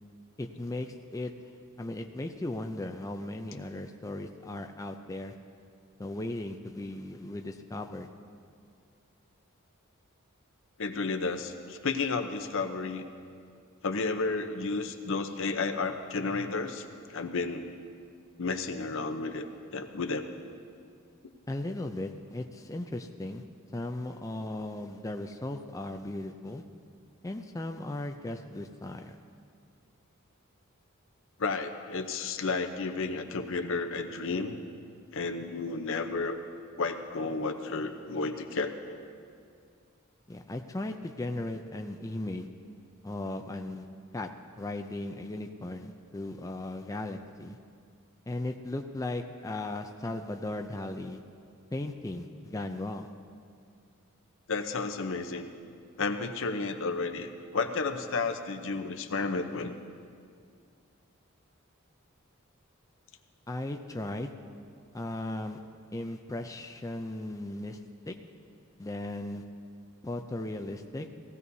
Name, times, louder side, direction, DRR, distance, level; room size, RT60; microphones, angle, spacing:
voice 1, 0.4-1.3 1.8-5.3 6.0-8.1 21.5-23.4 23.7-26.6 27.2-29.2 40.3-42.5 43.0-43.8 44.1-44.3 44.6-47.6 48.3-51.2 51.7-53.1 63.5-64.3 64.9-65.6 65.9-67.8 68.1-68.2 68.8-69.4 70.0-71.1, left 2 dB, 15° left, 4 dB, 0.4 m, -37 dB
voice 2, 10.8-13.0 13.8-16.8 17.1-17.7 18.4-19.5 19.7-20.3 31.4-34.6 35.1-36.4 36.8-39.0 54.5-55.5 56.0-59.7, left 4 dB, 65° left, 7 dB, 0.8 m, -32 dB
18.5 x 15.5 x 2.7 m, 2.2 s
head